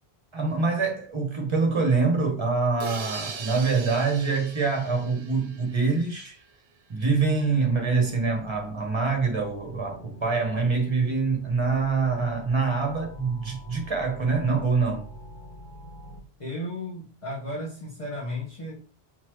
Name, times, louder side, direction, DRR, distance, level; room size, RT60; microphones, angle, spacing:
voice 1, 0.3-6.4 6.9-15.1, right 4 dB, 25° right, 1.3 m, -25 dB
sound 1, 2.8-6.5, right 6 dB, 75° right, 0.9 m, -40 dB
sound 2, 7.2-16.2, left 1 dB, 10° left, 1.8 m, -46 dB
voice 2, 16.4-18.8, left 1 dB, 30° left, 1.5 m, -34 dB
4.2 x 4.1 x 3.1 m
omnidirectional pair, 1.1 m